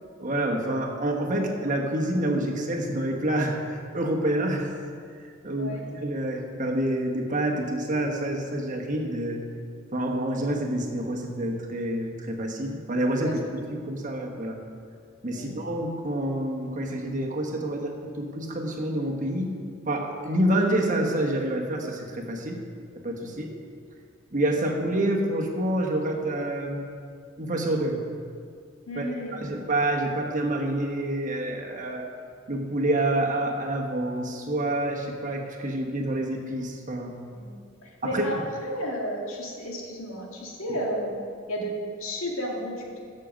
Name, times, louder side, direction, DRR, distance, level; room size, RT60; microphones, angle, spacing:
voice 1, 0.2-4.7 5.2-9.4 9.9-13.4 13.7-14.6 15.2-19.6 19.9-22.6 23.0-23.5 24.3-26.9 27.4-28.0 29.0-29.1 29.4-32.1 32.5-37.2 38.0-38.2, right 1 dB, 40° right, 1 dB, 1.3 m, -27 dB
voice 2, 5.6-5.9 13.2-13.5 15.3-15.5 23.3-23.4 28.9-29.5 37.3-41.1 41.5-41.7 42.0-43.0, equal, 85° left, -1 dB, 2.0 m, -33 dB
14.5 x 6.6 x 5.2 m, 2.3 s
head